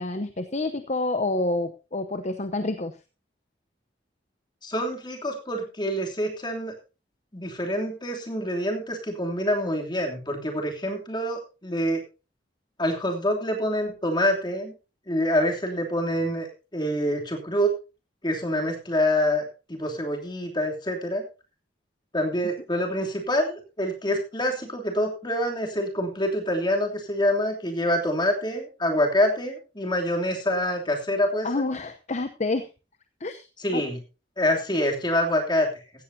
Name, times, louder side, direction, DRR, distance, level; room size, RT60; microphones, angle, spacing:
voice 1, 0.0-2.9 31.4-32.7 33.2-33.5 33.7-33.8, left 2 dB, 40° left, 9 dB, 0.8 m, -28 dB
voice 2, 4.6-6.7 7.3-12.0 12.8-14.7 15.1-16.5 16.7-17.7 18.2-19.4 19.7-21.2 22.1-31.5 33.6-34.0 34.4-35.7, equal, 25° left, 1 dB, 3.0 m, -26 dB
15.5 x 14.5 x 2.8 m, 0.31 s
head